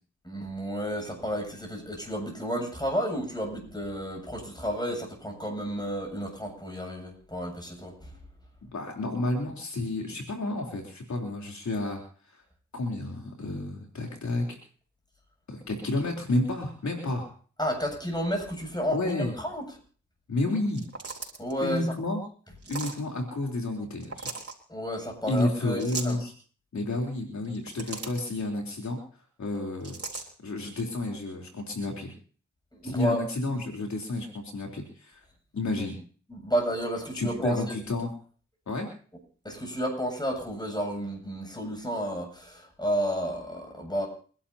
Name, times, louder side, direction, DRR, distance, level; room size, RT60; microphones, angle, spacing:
voice 1, 0.2-8.1 17.6-19.6 21.4-21.9 24.7-26.2 32.8-33.2 36.3-37.6 39.4-44.1, equal, 15° left, 2 dB, 7.9 m, -31 dB
voice 2, 8.7-12.0 12.7-14.6 15.5-17.3 18.9-19.3 20.3-20.9 21.6-22.2 22.7-24.3 25.3-26.3 26.7-29.0 29.4-29.9 30.4-32.1 32.8-35.2 35.5-36.0 37.1-38.1 38.7-38.9, left 2 dB, 70° left, 0 dB, 3.6 m, -30 dB
sound 1, 20.7-21.5 22.6-23.0 24.0-24.5 25.8-26.2 27.4-28.3 29.8-30.3, right 4 dB, 50° right, 3.9 m, -37 dB
29.0 x 11.5 x 2.8 m, 0.43 s
cardioid pair, 45°, 29 cm